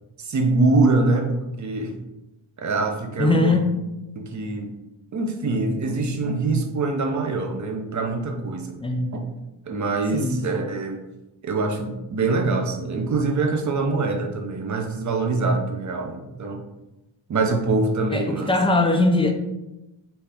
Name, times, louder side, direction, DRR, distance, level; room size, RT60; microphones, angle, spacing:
voice 1, 0.2-2.0 2.6-3.5 4.2-4.7 5.1-8.8 9.7-11.0 11.4-16.6 17.3-18.5, right 3 dB, 40° right, 4 dB, 0.6 m, -24 dB
voice 2, 3.2-3.7 8.8-9.1 10.1-10.4 18.1-19.3, left 2 dB, 15° left, 4 dB, 0.4 m, -20 dB
4.3 x 3.3 x 3.4 m, 0.97 s
wide cardioid pair, 140°, 48 cm